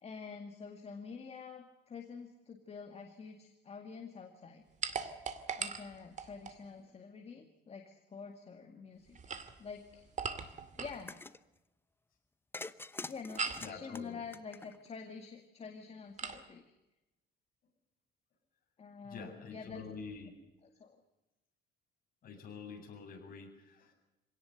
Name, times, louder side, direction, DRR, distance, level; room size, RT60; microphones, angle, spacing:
voice 1, 0.0-4.6 5.6-9.3 9.6-10.1 10.8-11.2 13.1-16.6 18.8-19.8 20.6-21.0, left 5 dB, 35° left, 4 dB, 2.2 m, -47 dB
sound 1, 4.8-6.6 9.1-11.0 13.4-13.7 16.2-16.4, right 5 dB, 40° right, 2.2 m, -39 dB
sound 2, 10.9-11.4 12.5-15.0, left 3 dB, 10° left, 0.8 m, -46 dB
voice 2, 13.6-14.2 19.0-20.3 22.2-23.9, left 5 dB, 50° left, 2 dB, 7.9 m, -47 dB
25.5 x 18.0 x 7.9 m, 1.0 s
cardioid pair, 145°, 18 cm